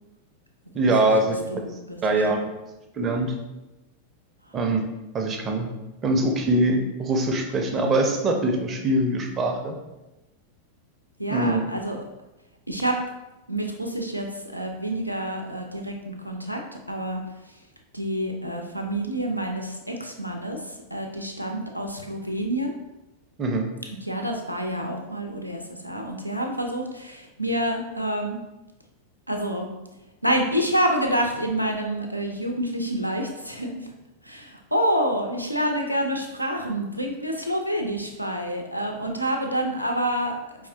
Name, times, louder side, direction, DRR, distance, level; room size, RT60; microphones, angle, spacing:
voice 1, 0.7-1.4 2.0-2.4 3.0-3.3 4.5-4.8 5.1-5.7 6.0-9.8 11.3-11.7 23.4-23.7, right 2 dB, 25° right, 3 dB, 0.6 m, -23 dB
voice 2, 1.5-2.0 11.2-12.0 12.7-13.0 13.5-16.6 16.9-17.2 17.9-22.7 24.0-28.4 29.3-29.7 30.2-33.9 34.2-40.4, right 1 dB, 90° right, 2 dB, 0.5 m, -28 dB
4.7 x 3.1 x 2.7 m, 1.0 s
figure-of-eight pair, 90°, 0 cm